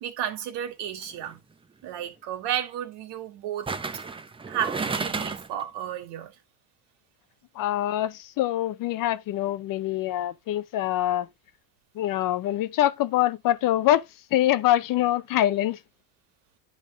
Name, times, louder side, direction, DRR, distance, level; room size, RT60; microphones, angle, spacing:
voice 1, 0.0-1.4 1.8-3.7 4.5-6.3, right 10 dB, 60° right, 2.2 m, -32 dB
sound 1, 1.0-1.3 3.7-5.6 6.0-6.1, right 4 dB, 10° right, 0.6 m, -32 dB
voice 2, 7.6-11.3 12.0-14.0 14.3-15.8, left 13 dB, 45° left, 0.6 m, -24 dB
9.9 x 3.7 x 5.0 m
supercardioid pair, 110°, 46 cm